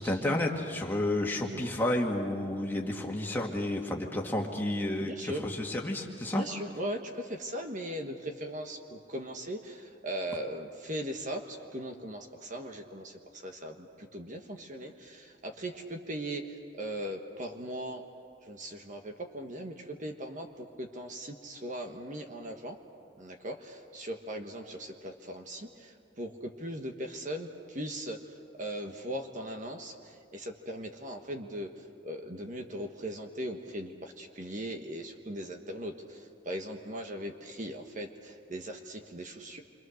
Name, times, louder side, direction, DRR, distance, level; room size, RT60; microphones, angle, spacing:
voice 1, 0.0-6.4, left 1 dB, 10° left, 0 dB, 2.0 m, -31 dB
voice 2, 5.0-5.4 6.3-18.0 18.4-22.8 23.2-28.2 28.6-31.7 32.0-39.6, right 1 dB, 40° right, 4 dB, 1.4 m, -39 dB
28.0 x 24.5 x 6.5 m, 2.6 s
head